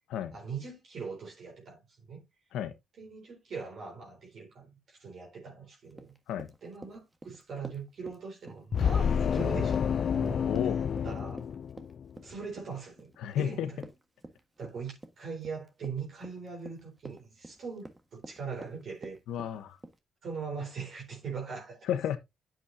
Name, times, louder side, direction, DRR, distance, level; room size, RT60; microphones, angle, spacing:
voice 1, 0.3-2.2 3.0-6.1 6.6-11.4 12.2-13.1 13.4-13.8 14.6-19.2 20.2-21.9, right 5 dB, 60° right, 4.0 m, -41 dB
Run, 5.9-20.0, right 2 dB, 15° right, 1.5 m, -49 dB
sound 1, 8.7-12.2, left 7 dB, 55° left, 0.4 m, -29 dB
voice 2, 10.4-10.8 13.2-13.7 19.3-19.8 21.9-22.2, left 10 dB, 85° left, 1.2 m, -32 dB
9.5 x 7.4 x 2.7 m
cardioid pair, 90°, 0 cm